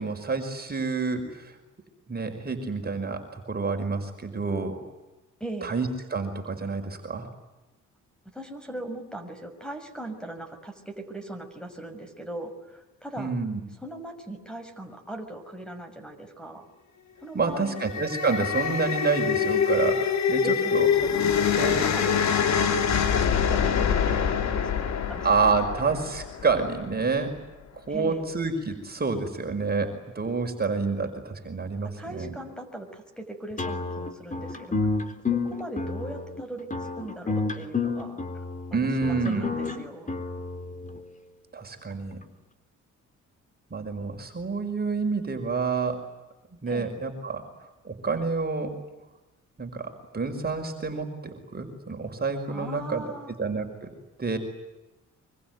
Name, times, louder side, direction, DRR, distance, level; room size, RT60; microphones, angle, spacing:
voice 1, 0.0-1.6 2.1-4.8 5.6-7.3 13.2-13.6 17.3-20.9 21.6-21.9 25.2-27.4 27.9-32.3 38.7-39.5 41.5-42.2 43.7-46.0 46.6-48.7 49.6-53.1 53.4-53.9 54.2-54.4, right 4 dB, 30° right, 4 dB, 5.3 m, -28 dB
voice 2, 5.4-5.7 8.3-13.3 13.8-16.6 17.2-17.8 20.4-21.4 21.8-25.8 27.9-28.3 31.8-34.8 35.3-38.4 38.7-40.1 46.7-46.9 52.5-53.4, right 1 dB, 5° left, 7 dB, 6.3 m, -40 dB
sound 1, 17.6-26.9, left 7 dB, 65° left, 2.8 m, -25 dB
sound 2, 33.6-41.0, left 4 dB, 25° left, 3.7 m, -30 dB
26.0 x 24.5 x 9.5 m, 1.1 s
cardioid pair, 90°, 30 cm